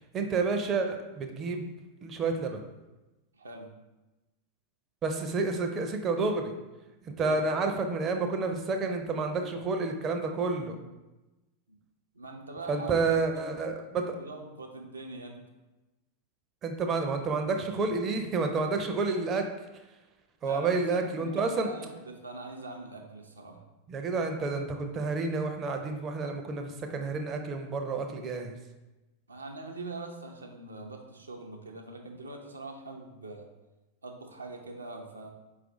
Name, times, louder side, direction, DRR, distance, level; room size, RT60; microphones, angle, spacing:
voice 1, 0.1-1.7 2.0-2.6 5.0-6.5 7.0-10.8 12.7-14.2 16.6-19.4 20.4-21.7 23.9-28.6, right 3 dB, 30° right, 5 dB, 0.5 m, -29 dB
voice 2, 3.3-3.7 7.2-7.4 11.7-11.8 12.1-13.6 14.1-15.4 20.4-23.6 29.3-33.5 34.0-35.3, right 3 dB, 75° right, 2 dB, 0.5 m, -43 dB
4.6 x 2.5 x 3.7 m, 1.1 s
figure-of-eight pair, 90°, 0 cm